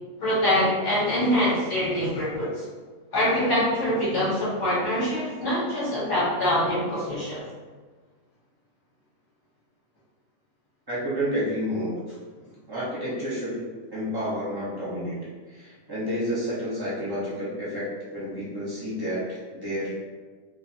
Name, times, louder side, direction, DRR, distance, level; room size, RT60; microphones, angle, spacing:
voice 1, 0.2-2.6 3.1-7.4, left 1 dB, 40° left, -8 dB, 0.9 m, -24 dB
voice 2, 10.9-11.9 12.7-13.6 13.9-15.2 15.5-20.0, equal, 25° right, -9 dB, 0.5 m, -30 dB
2.6 x 2.5 x 2.6 m, 1.4 s
omnidirectional pair, 1.6 m